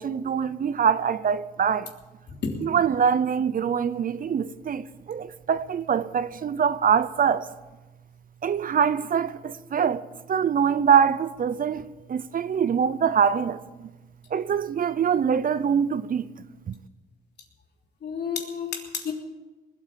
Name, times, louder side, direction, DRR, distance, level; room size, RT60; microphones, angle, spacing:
voice 1, 0.0-1.9 2.6-7.5 8.4-11.8 12.1-13.9 14.3-16.3 16.7-16.8, right 7 dB, 45° right, 0.6 m, -24 dB
voice 2, 2.3-2.6 18.0-19.1, left 6 dB, 60° left, 3.3 m, -31 dB
20.0 x 8.8 x 7.4 m
cardioid pair, 90°, 20 cm